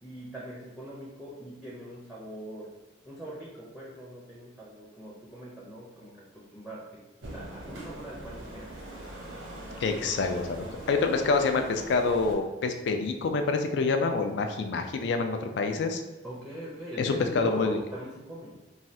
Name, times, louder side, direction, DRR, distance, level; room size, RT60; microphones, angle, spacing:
voice 1, 0.0-2.7 3.0-6.8 7.2-9.2 16.2-18.6, right 1 dB, ahead, -7 dB, 0.5 m, -42 dB
sound 1, 7.2-12.3, right 1 dB, 85° right, 0.7 m, -42 dB
voice 2, 9.8-16.0 17.0-17.8, left 4 dB, 65° left, 5 dB, 0.3 m, -27 dB
3.2 x 2.3 x 2.7 m, 1.0 s
head